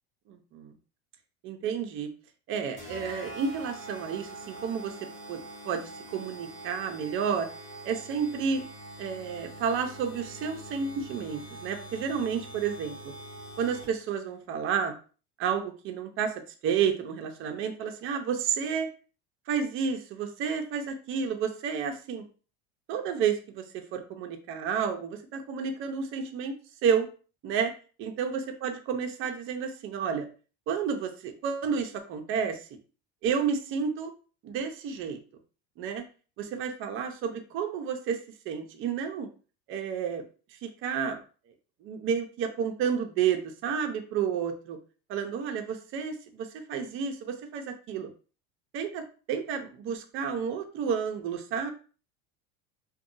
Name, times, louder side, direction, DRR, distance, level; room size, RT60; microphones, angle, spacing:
voice 1, 0.3-0.7 1.4-2.1 2.5-4.9 5.3-7.5 7.8-8.6 9.0-13.1 13.6-14.9 15.4-16.3 16.6-18.9 19.5-22.2 22.9-23.6 23.9-26.5 26.8-27.1 27.4-27.7 28.0-30.3 30.7-32.6 33.2-34.1 34.4-35.2 35.8-36.0 36.4-38.2 38.5-39.3 39.7-40.2 40.6-41.2 41.8-44.8 45.1-48.1 48.7-51.7, right 7 dB, 40° right, 5 dB, 0.6 m, -31 dB
sound 1, 2.8-14.2, right 1 dB, 25° left, 1.1 m, -44 dB
2.6 x 2.3 x 2.6 m, 0.37 s
supercardioid pair, 125°, 31 cm